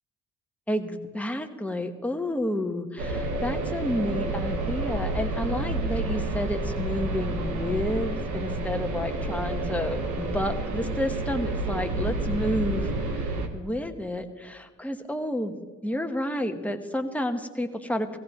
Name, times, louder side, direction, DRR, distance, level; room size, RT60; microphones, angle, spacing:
voice 1, 0.7-15.5 15.8-18.2, left 1 dB, 5° left, 5 dB, 1.1 m, -30 dB
sound 1, 3.0-13.5, right 2 dB, 75° right, 1.4 m, -29 dB
16.0 x 16.0 x 3.0 m, 1.5 s
cardioid pair, 90°, 30 cm